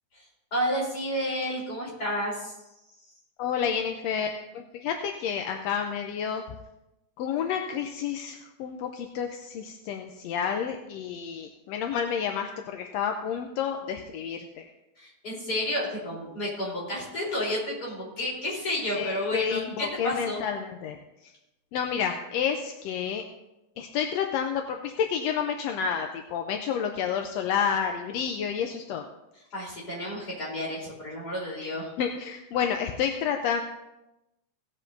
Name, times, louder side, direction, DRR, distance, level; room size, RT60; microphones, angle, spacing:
voice 1, 0.1-2.6 15.0-20.4 29.5-31.9, equal, 35° left, -5 dB, 4.1 m, -31 dB
voice 2, 3.4-6.4 7.2-14.7 18.9-21.0 21.2-21.3 21.7-23.2 23.8-29.1 32.0-33.6, left 7 dB, 75° left, 4 dB, 1.7 m, -30 dB
17.0 x 9.9 x 2.6 m, 0.93 s
omnidirectional pair, 3.3 m